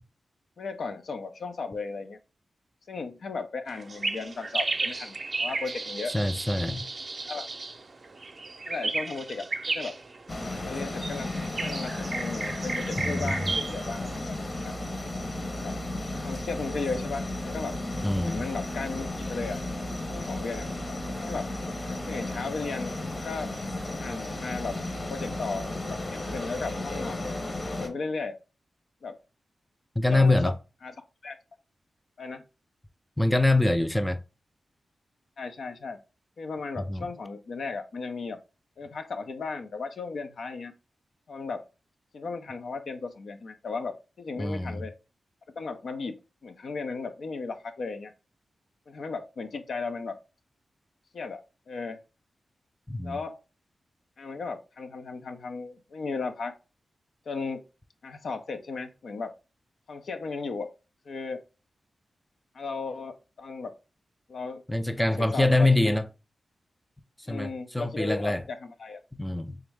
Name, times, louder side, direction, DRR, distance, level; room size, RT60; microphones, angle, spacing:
voice 1, 0.6-2.2 2.9-6.1 7.2-7.5 8.7-9.5 9.7-10.0 10.6-11.3 11.6-14.8 15.6-15.8 16.2-17.8 18.2-19.6 20.1-21.5 22.1-22.9 23.2-23.5 24.0-27.4 27.8-28.4 29.0-29.2 30.1-30.5 30.8-30.9 31.2-31.4 32.2-32.4 35.4-36.0 36.4-38.4 38.8-40.7 41.3-41.6 42.1-44.9 45.6-46.2 46.4-48.1 48.9-50.2 51.1-51.4 51.7-52.0 53.0-53.4 54.2-56.5 57.3-57.6 58.0-59.3 59.9-60.7 61.1-61.4 62.5-63.7 64.3-64.6 65.0-65.9 67.3-69.0, left 4 dB, 75° left, 0.6 m, -35 dB
sound 1, 3.7-14.2, right 3 dB, 50° right, 0.6 m, -34 dB
voice 2, 6.1-6.9 13.0-13.5 18.0-18.4 30.0-30.5 33.2-34.2 36.9-37.1 44.4-44.8 52.9-53.2 64.7-66.0 67.3-68.4 69.2-69.6, left 2 dB, 10° left, 0.4 m, -24 dB
sound 2, 10.3-27.9, left 2 dB, 40° left, 1.0 m, -34 dB
3.5 x 3.1 x 3.4 m
cardioid pair, 50°, 0 cm